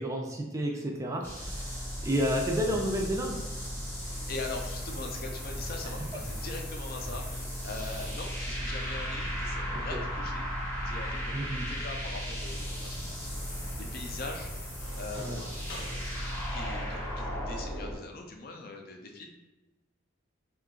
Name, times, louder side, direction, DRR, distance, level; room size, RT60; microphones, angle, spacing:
voice 1, 0.0-1.8 2.0-3.4 9.7-10.0 11.3-11.7 15.2-15.4, equal, 15° right, 1 dB, 0.4 m, -31 dB
sound 1, 1.2-18.0, equal, 10° left, 0.7 m, -36 dB
voice 2, 4.0-10.5 10.8-11.4 11.7-13.7 13.9-14.5 15.0-15.6 15.9-16.2 16.5-19.3, left 3 dB, 45° left, 2 dB, 0.5 m, -42 dB
sound 2, 12.5-17.6, equal, 85° left, 0.8 m, -48 dB
2.8 x 2.4 x 3.7 m, 1.1 s
head